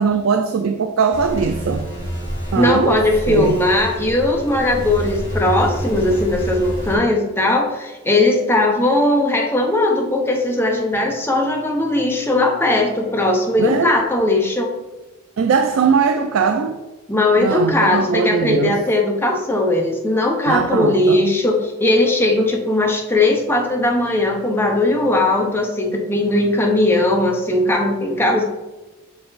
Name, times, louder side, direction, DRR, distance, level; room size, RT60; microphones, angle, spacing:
voice 1, 0.0-1.9 2.5-3.0 3.3-3.6 13.6-13.9 15.4-16.8 17.4-18.8 20.5-21.2, right 5 dB, 75° right, 0.4 m, -19 dB
sound 1, 1.1-7.0, equal, 15° right, 2.1 m, -28 dB
voice 2, 2.5-14.7 17.1-28.4, left 2 dB, 10° left, 0.6 m, -18 dB
6.6 x 4.0 x 4.0 m
head